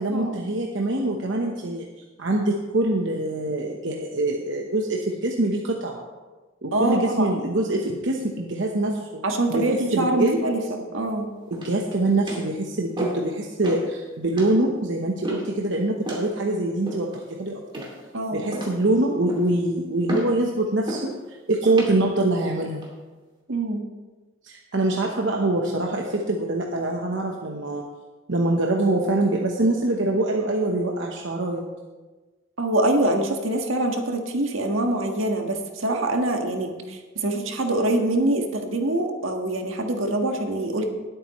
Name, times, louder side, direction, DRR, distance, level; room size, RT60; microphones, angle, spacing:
voice 1, 0.0-1.9 2.2-6.0 6.6-9.2 9.5-10.4 11.5-17.6 18.3-22.8 24.4-27.8 28.3-31.6, right 2 dB, 65° right, 0 dB, 1.0 m, -24 dB
voice 2, 6.7-7.4 9.2-11.3 18.1-18.6 23.5-23.8 32.6-40.9, right 1 dB, 80° right, 3 dB, 1.6 m, -24 dB
sound 1, 11.5-11.9 12.3-12.5 13.0-13.3 13.6-13.9 14.4-14.6 15.2-15.6 16.0-16.3 16.9-17.3 17.7-18.1 18.5-18.9 19.3-19.6 20.1-20.4 20.9-21.1 21.7-21.9 22.6-22.9, equal, 25° right, 2.5 m, -33 dB
19.5 x 8.6 x 3.1 m, 1.2 s
head